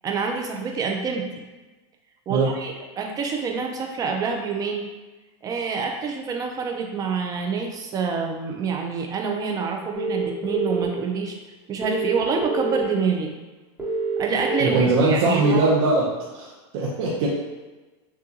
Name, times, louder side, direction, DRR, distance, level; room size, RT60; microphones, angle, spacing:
voice 1, 0.0-1.3 2.3-4.9 5.4-11.4 11.7-13.3 14.2-15.7, right 5 dB, 25° right, 2 dB, 0.6 m, -27 dB
sound 1, 9.9-10.8 11.8-12.8 13.8-14.8, right 4 dB, 10° right, 1.3 m, -26 dB
voice 2, 14.6-16.0 16.3-17.3, right 2 dB, 55° right, -5 dB, 0.9 m, -21 dB
6.2 x 2.5 x 2.9 m, 1.2 s
supercardioid pair, 135°, 15 cm